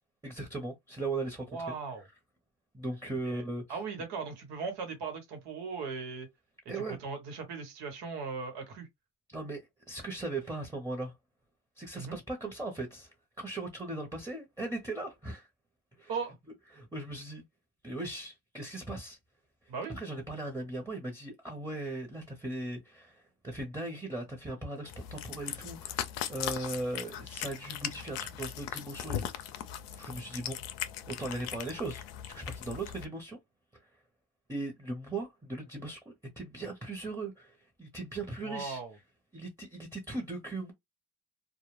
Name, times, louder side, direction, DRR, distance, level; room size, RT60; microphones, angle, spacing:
voice 1, 0.2-1.7 2.7-3.8 6.7-7.0 9.3-9.6 9.9-11.1 11.8-13.1 13.4-15.5 16.0-16.1 16.7-17.4 17.8-19.2 19.9-29.6 30.0-30.6 31.1-33.4 34.5-38.8 39.3-40.7, right 2 dB, 10° right, 0.9 m, -38 dB
voice 2, 1.5-2.0 3.2-3.4 3.7-6.3 6.9-8.9 11.9-12.2 16.1-16.3 19.7-20.0 38.4-39.0, right 5 dB, 80° right, 1.2 m, -38 dB
Cat, 24.9-33.0, left 10 dB, 85° left, 0.5 m, -39 dB
2.3 x 2.1 x 3.1 m
supercardioid pair, 80°, 39 cm